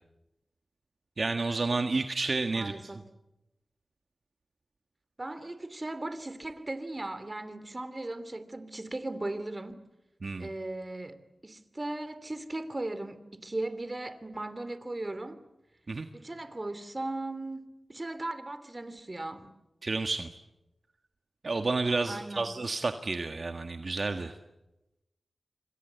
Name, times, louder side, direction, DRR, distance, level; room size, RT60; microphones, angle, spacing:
voice 1, 1.2-2.9 10.2-10.5 15.9-16.1 19.8-20.3 21.4-24.3, right 3 dB, 60° right, 1.6 m, -30 dB
voice 2, 2.5-3.1 5.2-9.8 10.4-15.4 16.1-19.5 22.1-22.5, right 2 dB, 35° right, 2.9 m, -37 dB
27.5 x 25.0 x 8.2 m
cardioid pair, 50°, 0 cm